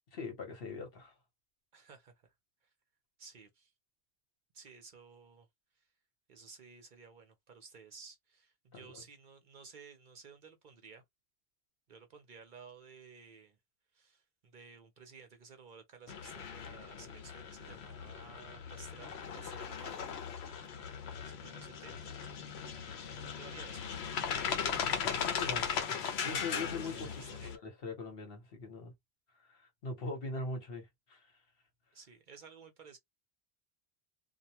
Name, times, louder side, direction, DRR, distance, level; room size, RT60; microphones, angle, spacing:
voice 1, 0.1-1.1 8.7-9.0 25.2-25.6 26.2-28.9 29.4-31.3, left 3 dB, 65° left, 1.2 m, -41 dB
voice 2, 1.7-2.3 2.6-2.7 3.2-3.7 4.5-5.5 5.8-5.9 6.3-11.0 11.9-13.6 13.9-20.1 21.2-22.2 23.3-23.9 25.5-25.7 26.8-27.6 31.9-33.0, right 5 dB, 55° right, 0.7 m, -55 dB
sound 1, 16.1-27.6, left 7 dB, 80° left, 0.9 m, -38 dB
2.3 x 2.2 x 2.7 m
omnidirectional pair, 1.1 m